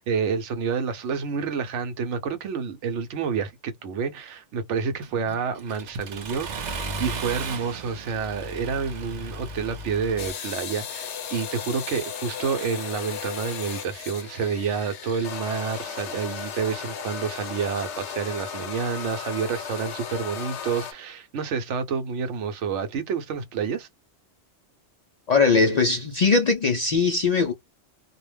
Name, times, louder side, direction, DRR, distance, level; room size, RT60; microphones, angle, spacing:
voice 1, 0.0-23.9, right 6 dB, 90° right, 1.0 m, -29 dB
Accelerating revving vroom, 5.0-10.3, right 2 dB, 50° right, 0.6 m, -35 dB
sound 1, 10.2-20.9, left 7 dB, 80° left, 0.9 m, -35 dB
voice 2, 25.3-27.5, left 4 dB, 60° left, 0.4 m, -20 dB
2.4 x 2.1 x 3.2 m
omnidirectional pair, 1.2 m